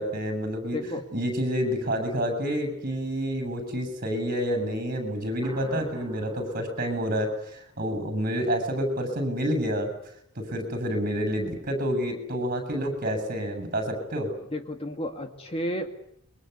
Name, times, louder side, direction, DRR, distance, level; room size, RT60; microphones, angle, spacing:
voice 1, 0.0-0.8 1.1-9.9 10.3-14.3, equal, 40° right, 7 dB, 7.8 m, -28 dB
voice 2, 0.7-1.0 14.5-15.9, left 1 dB, 25° left, 5 dB, 2.2 m, -32 dB
sound 1, 5.4-8.0, equal, 20° right, 4.2 m, -46 dB
28.5 x 23.5 x 8.3 m, 0.74 s
head